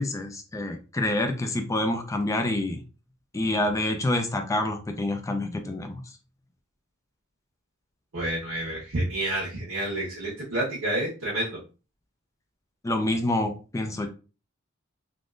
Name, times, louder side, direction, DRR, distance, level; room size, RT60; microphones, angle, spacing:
voice 1, 0.0-2.8 3.3-6.0 12.8-14.1, left 1 dB, 15° left, 0.3 m, -27 dB
voice 2, 8.1-11.6, right 1 dB, 80° right, 1.2 m, -29 dB
3.5 x 2.4 x 2.4 m
head